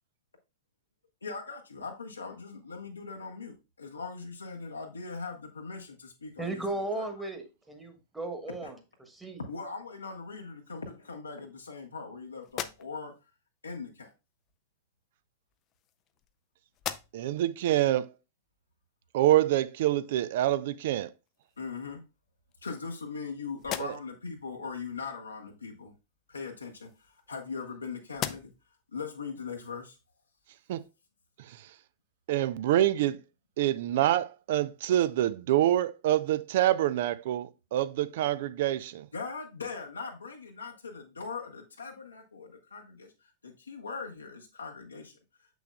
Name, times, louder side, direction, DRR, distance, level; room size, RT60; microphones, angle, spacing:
voice 1, 1.2-7.3 8.6-8.7 9.4-13.1 13.6-14.1 21.6-22.0 22.6-25.9 26.3-28.5 28.9-30.0 39.1-45.1, left 4 dB, 80° left, 1.0 m, -40 dB
voice 2, 6.4-8.7 9.0-9.4, right 2 dB, 5° right, 1.3 m, -36 dB
sound 1, 12.4-13.3 14.4-14.6 15.5-16.4 16.7-17.4 17.9-18.0 20.7-20.8 21.3-21.9 22.5-23.2 23.6-24.3 26.3-27.7 28.1-28.8, left 11 dB, 35° left, 0.4 m, -41 dB
voice 3, 17.1-18.1 19.1-21.1 23.8-23.9 30.7-30.8 31.5-31.6 32.3-33.2 33.6-39.1, right 13 dB, 55° right, 0.4 m, -26 dB
7.0 x 6.1 x 2.3 m
figure-of-eight pair, 95°, 0 cm